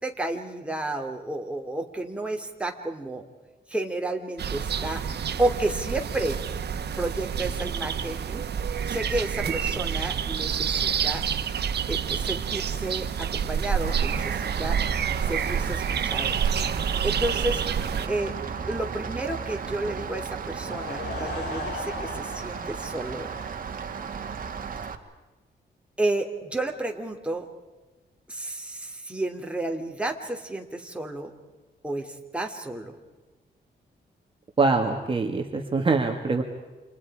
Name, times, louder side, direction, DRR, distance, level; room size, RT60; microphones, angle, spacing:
voice 1, 0.0-3.2 3.7-6.4 7.0-8.4 8.8-11.2 11.9-14.8 15.3-16.4 17.0-17.6 18.1-18.3 18.7-23.3 26.0-27.5 28.3-31.3 31.8-32.9, right 2 dB, 5° right, 2 dB, 2.9 m, -31 dB
sound 1, 4.4-18.1, right 7 dB, 70° right, 1.4 m, -28 dB
Rain, 13.8-24.9, right 6 dB, 50° right, 1.9 m, -34 dB
Laughter / Crowd, 20.5-24.0, left 2 dB, 75° left, 5.5 m, -38 dB
voice 2, 34.6-36.4, right 3 dB, 30° right, 2 dB, 1.9 m, -24 dB
30.0 x 27.5 x 4.9 m, 1.2 s
wide cardioid pair, 120°, 18 cm